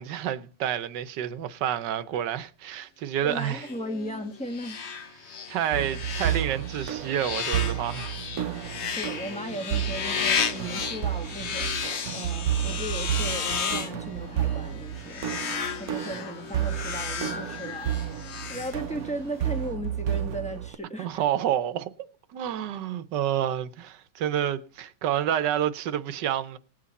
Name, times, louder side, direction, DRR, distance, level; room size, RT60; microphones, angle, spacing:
voice 1, 0.0-3.7 5.5-8.2 21.0-26.6, right 10 dB, 80° right, 1.4 m, -29 dB
voice 2, 3.2-4.8 5.8-5.9 8.9-11.8 12.1-15.2 15.8-17.9 18.5-21.2, equal, 5° left, 0.9 m, -36 dB
sound 1, 3.4-19.3, left 6 dB, 50° left, 1.0 m, -34 dB
sound 2, 5.7-20.8, right 11 dB, 65° right, 1.0 m, -32 dB
19.5 x 7.7 x 4.1 m
omnidirectional pair, 1.9 m